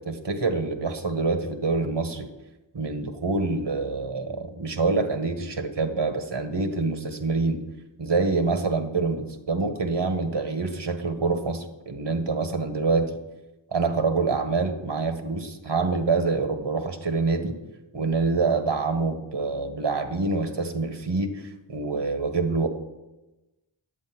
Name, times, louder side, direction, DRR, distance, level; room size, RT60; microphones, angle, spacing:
voice 1, 0.1-2.3 2.7-7.6 8.0-13.1 13.7-17.6 17.9-21.4 21.7-22.7, right 3 dB, 60° right, 6 dB, 1.5 m, -26 dB
10.0 x 8.7 x 6.0 m, 1.0 s
wide cardioid pair, 60°, 46 cm